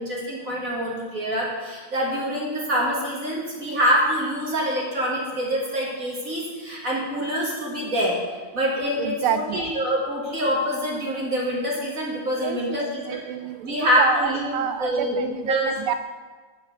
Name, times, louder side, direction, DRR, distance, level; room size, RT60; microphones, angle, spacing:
voice 1, 0.0-8.2 8.5-13.2 13.6-15.7, equal, 40° right, -4 dB, 2.2 m, -25 dB
voice 2, 9.0-9.6 12.4-15.9, right 9 dB, 85° right, 10 dB, 1.6 m, -28 dB
9.6 x 6.3 x 6.7 m, 1.4 s
omnidirectional pair, 2.4 m